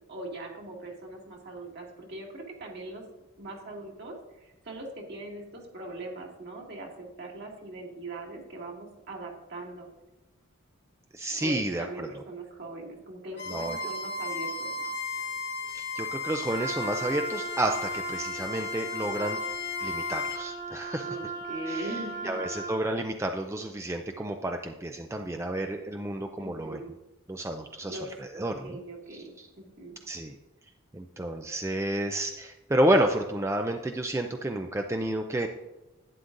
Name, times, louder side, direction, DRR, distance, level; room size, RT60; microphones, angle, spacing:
voice 1, 0.1-3.0 3.4-9.9 11.3-14.9 21.0-22.4 26.4-26.9 27.9-30.0, right 2 dB, 50° right, 0 dB, 2.2 m, -41 dB
voice 2, 11.1-12.1 13.5-13.8 15.7-19.4 19.8-21.2 21.7-21.9 22.2-26.8 27.3-28.8 29.4-29.5 30.1-30.4 30.9-35.5, right 1 dB, 15° right, 5 dB, 0.4 m, -30 dB
Bowed string instrument, 13.3-20.4, left 3 dB, 50° left, 1.4 m, -35 dB
Wind instrument woodwind instrument, 16.5-22.8, right 3 dB, 75° right, 3.0 m, -38 dB
11.5 x 9.5 x 2.6 m, 1.0 s
head